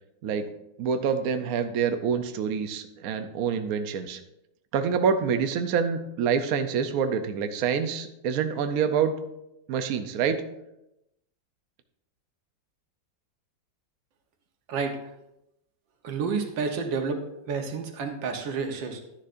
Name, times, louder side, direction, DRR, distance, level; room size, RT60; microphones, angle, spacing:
voice 1, 0.8-4.2 4.7-9.1 9.7-10.4, right 6 dB, 65° right, 8 dB, 1.0 m, -26 dB
voice 2, 16.0-17.2 17.5-19.0, right 5 dB, 85° right, 4 dB, 1.8 m, -29 dB
11.5 x 10.0 x 2.5 m, 0.87 s
omnidirectional pair, 2.0 m